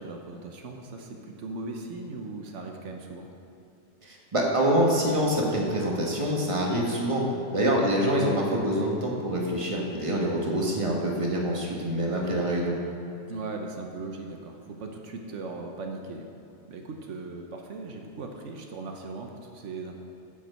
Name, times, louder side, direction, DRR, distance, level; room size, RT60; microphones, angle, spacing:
voice 1, 0.0-3.3 7.9-8.0 10.6-10.7 13.3-16.3 16.7-19.9, right 3 dB, 80° right, 3 dB, 1.2 m, -38 dB
voice 2, 4.0-7.2 7.5-12.7, right 1 dB, 25° right, -2 dB, 1.5 m, -25 dB
9.6 x 6.0 x 7.5 m, 2.7 s
omnidirectional pair, 1.2 m